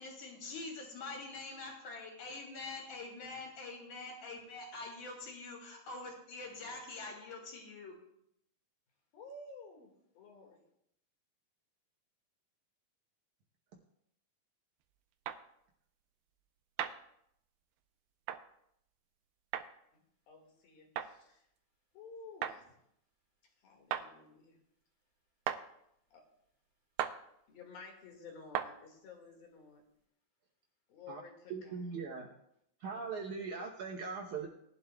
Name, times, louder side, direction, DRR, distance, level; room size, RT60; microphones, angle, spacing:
voice 1, 0.0-8.0, left 3 dB, 55° left, 0 dB, 4.1 m, -45 dB
voice 2, 9.1-9.9 10.2-10.6 19.9-20.0 20.3-21.4 21.9-22.6 23.6-24.6 26.1-26.2 27.5-29.8 30.9-31.8 32.9-33.1, left 3 dB, 70° left, 1 dB, 3.8 m, -53 dB
sound 1, 15.3-15.4 16.8-17.0 18.3-18.4 19.5-19.7 21.0-21.1 22.4-22.6 23.9-24.1 25.5-25.6 27.0-27.2 28.5-28.7, right 10 dB, 90° right, 2.5 m, -35 dB
voice 3, 31.5-32.3 32.8-34.5, right 5 dB, 70° right, 0 dB, 2.1 m, -40 dB
20.0 x 11.5 x 2.3 m, 0.76 s
omnidirectional pair, 4.3 m